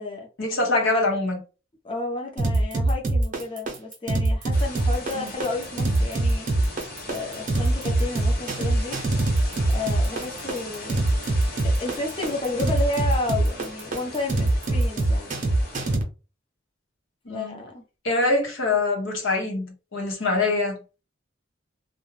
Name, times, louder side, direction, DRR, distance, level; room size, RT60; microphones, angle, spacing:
voice 1, 0.4-1.4 5.1-5.3 17.2-17.6 18.0-20.8, left 2 dB, 75° left, 0.9 m, -24 dB
voice 2, 1.8-6.5 7.1-9.0 9.7-11.1 11.8-15.3 17.3-17.8, left 2 dB, 25° left, 0.7 m, -31 dB
sound 1, 2.4-16.0, right 2 dB, 40° right, 0.7 m, -23 dB
sound 2, 4.5-16.0, left 2 dB, 50° left, 1.1 m, -39 dB
2.3 x 2.2 x 3.1 m
head